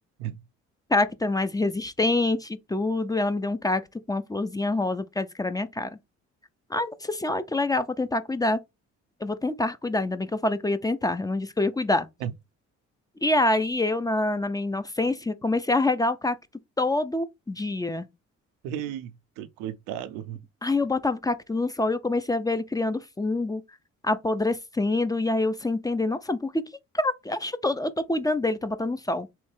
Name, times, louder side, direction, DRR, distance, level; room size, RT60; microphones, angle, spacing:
voice 1, 0.9-3.8 4.1-5.9 6.7-8.6 9.2-12.1 13.2-16.4 16.8-18.1 20.6-23.6 24.0-26.6 26.9-29.3, left 2 dB, 10° left, 0.4 m, -26 dB
voice 2, 18.6-20.4, right 10 dB, 90° right, 0.5 m, -34 dB
3.5 x 3.1 x 3.2 m
supercardioid pair, 75°, 32 cm